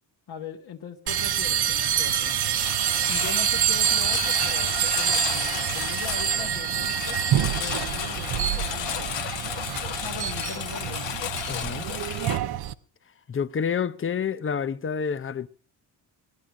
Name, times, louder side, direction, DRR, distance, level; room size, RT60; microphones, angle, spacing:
voice 1, 0.3-2.4 3.1-9.3 10.0-11.2, left 6 dB, 50° left, 1.6 m, -40 dB
sound 1, 1.1-12.7, right 11 dB, 55° right, 0.8 m, -26 dB
Engine, 1.7-12.4, left 10 dB, 75° left, 1.3 m, -33 dB
voice 2, 11.5-11.9 13.3-15.5, left 6 dB, 30° left, 0.7 m, -28 dB
18.5 x 11.5 x 6.1 m
cardioid pair, 115°, 45 cm